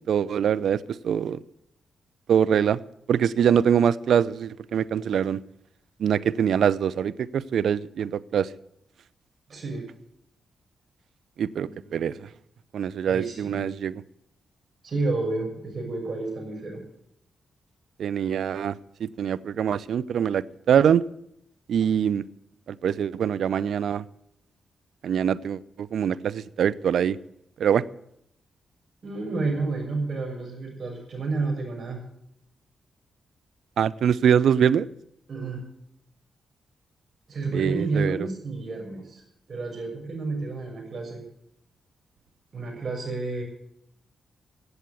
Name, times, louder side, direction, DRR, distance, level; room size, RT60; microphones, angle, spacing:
voice 1, 0.1-0.8 1.0-1.4 2.3-2.8 3.1-5.4 6.0-8.5 11.4-12.1 12.7-13.9 18.0-18.7 19.0-21.1 21.7-22.2 22.8-24.0 25.0-27.2 27.6-27.8 33.8-34.9 37.5-38.2, right 8 dB, 70° right, 17 dB, 0.5 m, -23 dB
voice 2, 9.5-9.9 11.6-12.3 13.1-13.6 14.8-16.8 29.0-32.0 35.3-35.6 37.3-39.2 39.5-41.2 42.5-43.4, right 3 dB, 55° right, 1 dB, 6.3 m, -30 dB
16.0 x 8.2 x 8.2 m, 0.77 s
hypercardioid pair, 40°, 0 cm